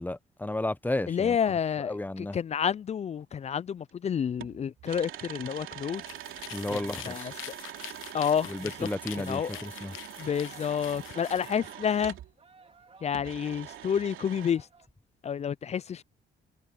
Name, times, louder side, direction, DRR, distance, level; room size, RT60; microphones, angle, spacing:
voice 1, 0.0-1.4 1.8-2.4 6.5-7.3 8.5-10.0, left 2 dB, 10° left, 0.8 m, -33 dB
voice 2, 1.1-6.0 6.7-6.8 7.1-7.3 8.1-8.9 9.3-9.6 10.2-12.1 13.0-14.7 15.2-16.0, left 8 dB, 35° left, 0.4 m, -29 dB
sound 1, 3.9-4.0 4.4-12.3 13.1-14.5, right 13 dB, 85° right, 3.2 m, -44 dB
sound 2, 5.1-14.9, right 4 dB, 30° right, 3.1 m, -57 dB
sound 3, 5.9-11.6, left 15 dB, 90° left, 0.9 m, -45 dB
cardioid pair, 90°, 20 cm